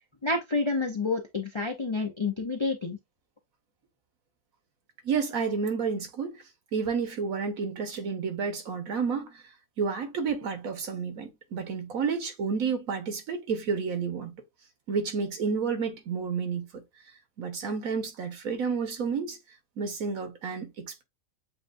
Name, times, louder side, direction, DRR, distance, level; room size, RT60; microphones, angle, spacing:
voice 1, 0.2-3.0, left 3 dB, 45° left, 0.3 m, -29 dB
voice 2, 5.0-6.4 6.7-9.4 9.8-14.3 14.9-16.8 17.4-19.4 19.8-21.0, right 5 dB, 80° right, 1.5 m, -30 dB
7.6 x 2.5 x 2.5 m
omnidirectional pair, 1.4 m